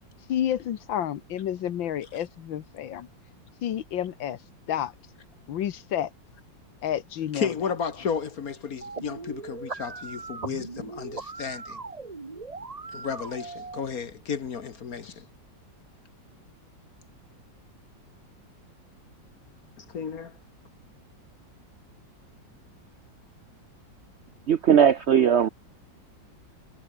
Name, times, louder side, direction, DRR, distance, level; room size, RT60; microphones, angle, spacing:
voice 1, 0.3-3.1 3.6-4.4 4.7-4.9 5.5-6.1 6.8-7.5, left 10 dB, 85° left, 1.9 m, -30 dB
voice 2, 7.3-11.8 12.9-15.2 19.8-20.3, left 6 dB, 50° left, 1.7 m, -33 dB
sound 1, 8.8-13.8, right 4 dB, 25° right, 1.2 m, -39 dB
voice 3, 24.5-25.5, right 8 dB, 75° right, 0.6 m, -19 dB
omnidirectional pair, 2.1 m